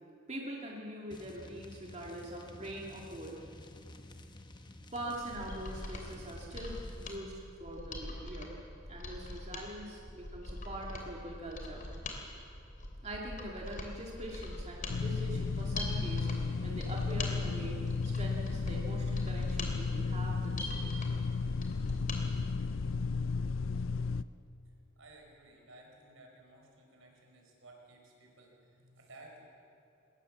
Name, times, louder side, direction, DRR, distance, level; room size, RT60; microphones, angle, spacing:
voice 1, 0.3-3.4 4.9-7.3 7.6-8.5 8.9-11.8 13.0-16.3 16.6-20.9, right 1 dB, 35° right, -2 dB, 2.3 m, -43 dB
sound 1, 1.1-7.2, left 1 dB, 20° left, 1.0 m, -52 dB
Mechanisms, 5.2-22.2 22.6-22.7, left 2 dB, 40° left, 2.9 m, -43 dB
sound 2, 14.9-24.2, left 4 dB, 75° left, 0.5 m, -34 dB
voice 2, 24.9-29.4, right 2 dB, 80° right, 1 dB, 4.7 m, -56 dB
20.5 x 19.0 x 7.3 m, 2.8 s
head